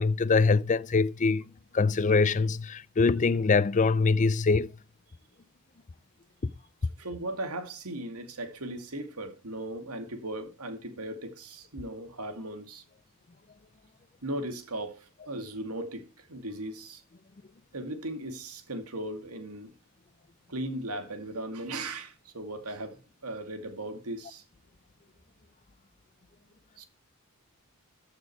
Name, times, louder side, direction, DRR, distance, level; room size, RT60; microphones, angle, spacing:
voice 1, 0.0-1.5 1.7-4.7, left 4 dB, 35° left, 0.5 m, -23 dB
voice 2, 7.0-12.8 14.2-17.0 17.7-19.7 20.5-24.4 26.8-26.9, right 1 dB, 90° right, 2.3 m, -37 dB
14.0 x 6.6 x 4.7 m
head